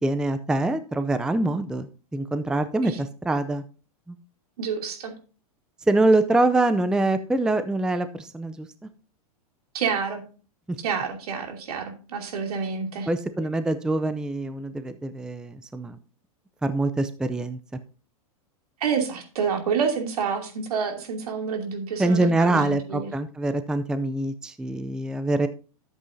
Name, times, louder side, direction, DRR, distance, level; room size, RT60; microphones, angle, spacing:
voice 1, 0.0-3.6 5.9-8.7 13.1-16.0 16.6-17.6 22.0-25.5, right 2 dB, 5° right, 11 dB, 0.5 m, -24 dB
voice 2, 4.6-5.1 9.7-10.2 10.8-13.1 18.8-23.1, right 6 dB, 75° right, 3 dB, 2.8 m, -28 dB
12.5 x 8.0 x 2.7 m, 0.36 s
hypercardioid pair, 120°, 19 cm